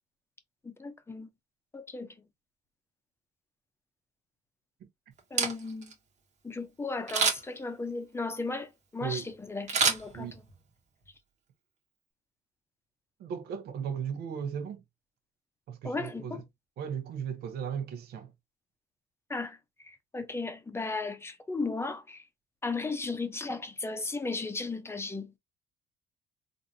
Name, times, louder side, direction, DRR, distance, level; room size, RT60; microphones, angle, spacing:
voice 1, 0.6-1.3 1.7-2.2 5.3-5.9 6.4-10.4 15.8-16.4 19.3-22.3 22.6-25.4, left 3 dB, 15° left, 0.6 m, -36 dB
Camera, 5.2-5.9 7.1-7.6 9.7-10.6 11.0-11.1, right 5 dB, 45° right, 1.2 m, -28 dB
voice 2, 13.2-14.8 15.7-16.4 16.8-18.3, right 7 dB, 70° right, 0.8 m, -36 dB
3.8 x 2.6 x 2.7 m
cardioid pair, 110°, 17 cm